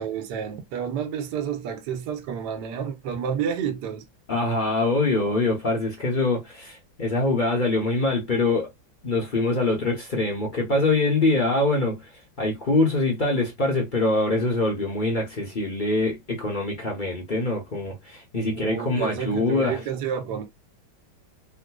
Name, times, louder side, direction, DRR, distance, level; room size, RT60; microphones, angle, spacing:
voice 1, 0.0-4.0 18.5-20.4, right 8 dB, 60° right, 1.3 m, -30 dB
voice 2, 4.3-8.7 9.0-12.1 12.4-19.8, left 2 dB, 55° left, 0.5 m, -24 dB
3.7 x 2.8 x 2.2 m
omnidirectional pair, 2.3 m